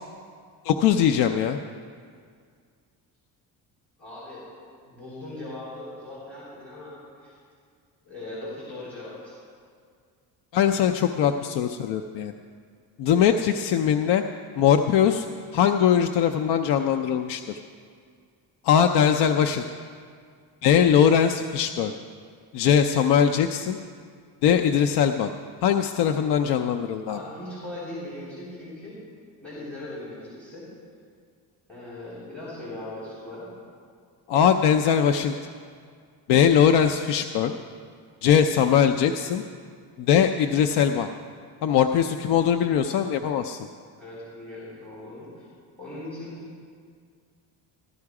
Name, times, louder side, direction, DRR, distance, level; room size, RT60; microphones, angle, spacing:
voice 1, 0.6-1.6 10.5-12.3 13.0-14.2 14.6-15.3 15.5-17.4 18.6-19.6 20.6-21.9 22.5-23.8 24.4-25.3 25.6-27.2 34.3-35.3 36.3-37.5 38.2-39.4 40.0-41.1 41.6-43.7, left 8 dB, 70° left, 6 dB, 0.6 m, -21 dB
voice 2, 4.0-4.5 4.8-7.4 8.0-9.3 25.9-26.1 27.1-29.0 29.4-30.7 31.7-33.5 44.0-45.5 45.8-46.3, left 1 dB, 5° left, -9 dB, 3.9 m, -39 dB
15.0 x 12.5 x 4.8 m, 2.1 s
cardioid pair, 160°, 41 cm